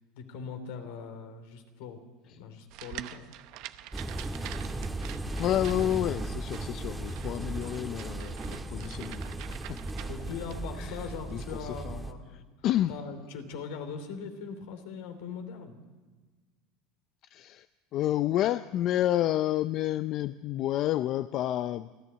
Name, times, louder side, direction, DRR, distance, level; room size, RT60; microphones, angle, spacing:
voice 1, 0.1-2.0 2.3-3.2 10.0-12.4 12.9-15.8, left 5 dB, 75° left, 7 dB, 3.0 m, -41 dB
sound 1, 2.7-10.6, right 14 dB, 60° right, 0.8 m, -46 dB
sound 2, 3.9-12.1, right 2 dB, 10° right, 1.6 m, -36 dB
voice 2, 5.4-9.2 9.7-9.8 10.8-11.0 11.3-12.0 12.3-12.9 17.3-17.7 17.9-21.9, left 13 dB, 50° left, 13 dB, 0.5 m, -29 dB
sound 3, 10.0-10.6, left 3 dB, 35° left, 2.0 m, -58 dB
28.5 x 11.0 x 8.1 m, 1.3 s
supercardioid pair, 110°, 0 cm